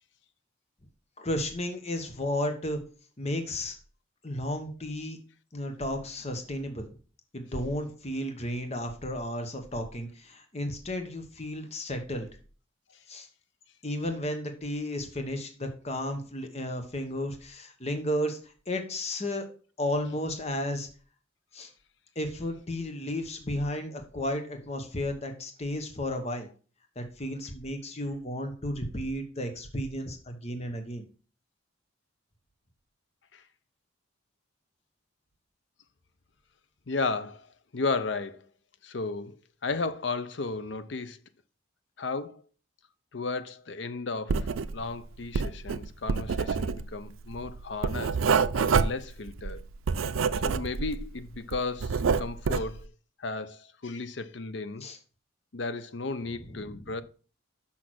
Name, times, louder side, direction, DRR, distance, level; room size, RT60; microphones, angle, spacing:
voice 1, 1.2-2.8 3.2-3.8 4.2-5.2 5.5-6.9 7.3-12.3 13.1-13.3 13.8-19.4 19.8-20.9 21.5-21.7 22.1-26.5 26.9-31.0 54.8-55.0 56.6-56.9, left 1 dB, 35° left, 1.2 m, -33 dB
voice 2, 36.9-38.5 38.8-41.2 42.0-42.4 43.1-48.2 48.5-49.6 50.4-52.9 53.2-54.9 55.5-57.0, left 3 dB, 60° left, 0.7 m, -34 dB
Writing, 44.3-45.0 45.2-51.0 51.3-52.8, right 5 dB, 90° right, 0.5 m, -27 dB
6.3 x 5.8 x 6.1 m
head